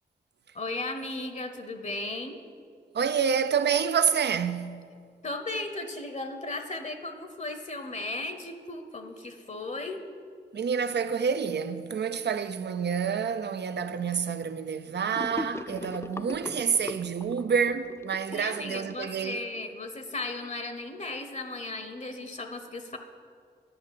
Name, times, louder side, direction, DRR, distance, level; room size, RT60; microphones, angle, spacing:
voice 1, 0.5-2.4 5.2-10.0 18.3-23.0, left 2 dB, 40° left, 0.8 m, -36 dB
voice 2, 2.9-4.8 10.5-19.4, right 6 dB, 70° right, 0.5 m, -28 dB
Gurgling / Sink (filling or washing), 15.1-19.6, left 2 dB, 15° left, 0.3 m, -39 dB
11.0 x 5.3 x 8.3 m
cardioid pair, 70°, 19 cm